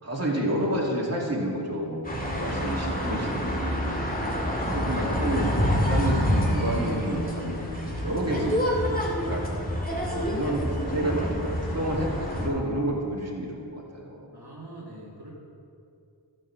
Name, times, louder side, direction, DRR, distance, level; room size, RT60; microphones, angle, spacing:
voice 1, 0.0-9.4 10.0-11.3 11.6-14.3, right 1 dB, 35° right, -3 dB, 2.5 m, -30 dB
sound 1, 2.0-12.5, equal, 20° left, 2.2 m, -27 dB
voice 2, 14.3-15.3, right 2 dB, 55° right, -5 dB, 2.0 m, -43 dB
13.5 x 7.7 x 6.0 m, 2.5 s
wide cardioid pair, 65°, 45 cm